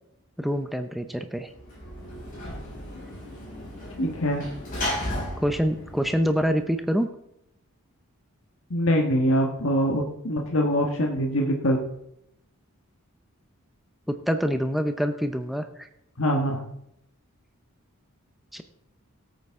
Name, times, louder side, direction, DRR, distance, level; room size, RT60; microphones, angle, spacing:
voice 1, 0.4-1.5 5.4-7.1 14.1-15.9 18.5-18.6, equal, ahead, 7 dB, 0.6 m, -26 dB
Sliding door / Slam, 1.5-6.9, left 1 dB, 40° left, 5.3 m, -35 dB
voice 2, 4.0-4.4 8.7-11.8 16.2-16.6, equal, 60° left, 1 dB, 1.5 m, -23 dB
17.5 x 8.5 x 3.7 m, 0.78 s
head